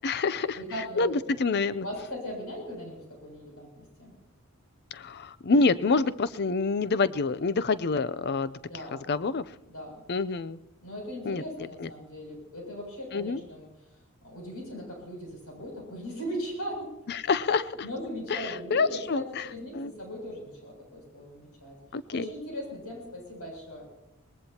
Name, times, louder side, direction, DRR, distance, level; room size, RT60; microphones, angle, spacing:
voice 1, 0.0-0.6 1.0-1.9 4.9-8.6 8.9-9.4 10.1-10.6 11.3-11.4 11.8-11.9 13.1-13.4 17.1-17.6 18.3-19.5 19.7-19.9 21.9-22.3, left 4 dB, 45° left, 16 dB, 0.5 m, -27 dB
voice 2, 0.6-4.1 8.6-9.4 9.7-9.9 10.8-13.7 14.2-16.9 17.4-21.8 22.1-23.9, equal, 75° left, 0 dB, 7.3 m, -39 dB
23.0 x 19.5 x 2.9 m, 0.88 s
head